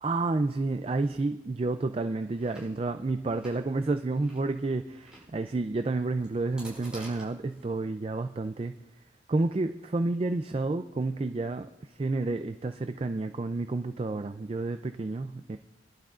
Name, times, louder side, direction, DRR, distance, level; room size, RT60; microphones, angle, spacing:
voice 1, 0.0-8.8 9.3-11.7 12.0-15.6, right 3 dB, 30° right, 8 dB, 0.3 m, -30 dB
Chewing mastication, 2.2-7.6, right 1 dB, 5° right, 5.5 m, -52 dB
24.5 x 11.5 x 2.5 m, 1.0 s
head